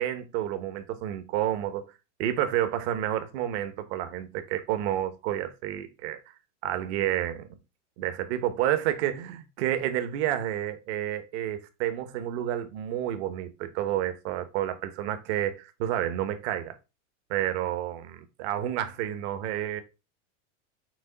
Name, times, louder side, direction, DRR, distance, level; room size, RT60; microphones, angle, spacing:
voice 1, 0.0-1.8 2.2-6.2 6.6-7.5 8.0-16.7 17.3-19.8, right 12 dB, 60° right, 0.9 m, -30 dB
6.2 x 2.1 x 3.8 m
supercardioid pair, 135°, 37 cm